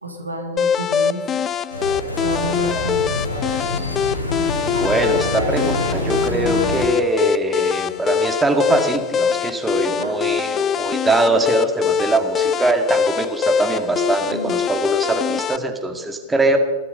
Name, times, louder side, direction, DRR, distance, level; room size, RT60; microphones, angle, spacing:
voice 1, 0.0-1.4 2.2-3.2 10.0-10.2 14.3-14.6, right 1 dB, 80° right, 2 dB, 2.7 m, -30 dB
sound 1, 0.6-15.6, left 7 dB, 25° left, 0.5 m, -23 dB
sound 2, 1.7-6.8, left 1 dB, 85° left, 3.8 m, -25 dB
voice 2, 4.8-16.6, right 2 dB, 10° right, 4 dB, 2.2 m, -22 dB
19.5 x 13.0 x 5.5 m, 1.4 s
figure-of-eight pair, 90°, 0 cm